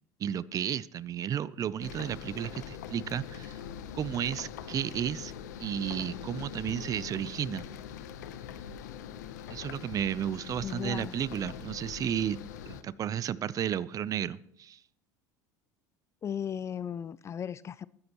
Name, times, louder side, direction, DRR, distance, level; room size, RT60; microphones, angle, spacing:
voice 1, 0.2-3.6 3.9-5.3 5.6-7.6 9.5-12.4 12.7-14.8, right 9 dB, 40° right, 0.5 m, -33 dB
sound 1, 1.8-12.8, left 8 dB, 85° left, 0.9 m, -43 dB
voice 2, 10.6-11.2 16.2-17.9, left 8 dB, 30° left, 0.4 m, -36 dB
21.0 x 9.5 x 3.0 m
hypercardioid pair, 85°, 9 cm